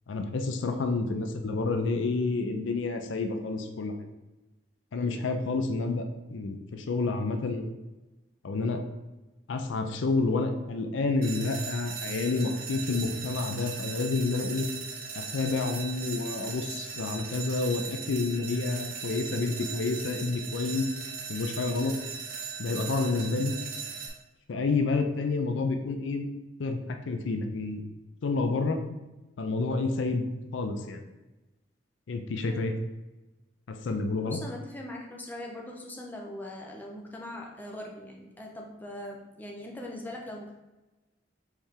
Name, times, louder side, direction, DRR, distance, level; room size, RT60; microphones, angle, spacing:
voice 1, 0.1-4.1 4.9-7.6 8.4-8.8 9.5-14.7 15.2-20.8 21.3-22.0 22.6-23.5 24.5-26.3 26.6-27.8 28.2-28.8 29.4-30.2 30.5-31.0 32.1-32.7 33.7-34.4, left 3 dB, 80° left, 6 dB, 0.5 m, -29 dB
sound 1, 11.2-24.1, right 6 dB, 45° right, 0.7 m, -38 dB
voice 2, 34.2-40.5, left 1 dB, 10° left, -1 dB, 0.6 m, -41 dB
4.5 x 3.3 x 3.6 m, 1.0 s
head